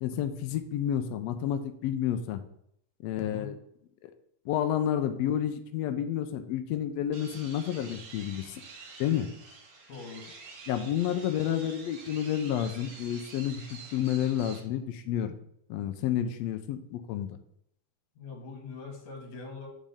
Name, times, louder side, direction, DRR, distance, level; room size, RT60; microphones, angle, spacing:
voice 1, 0.0-2.4 3.0-3.6 4.0-4.1 4.5-8.6 9.0-9.3 10.7-15.3 15.7-17.4, left 10 dB, 80° left, 8 dB, 1.5 m, -30 dB
voice 2, 3.2-3.6 9.9-10.3 18.2-19.7, left 4 dB, 65° left, 1 dB, 2.8 m, -42 dB
sound 1, 7.1-14.6, right 4 dB, 60° right, 2.0 m, -48 dB
7.5 x 5.0 x 3.5 m, 0.72 s
omnidirectional pair, 3.5 m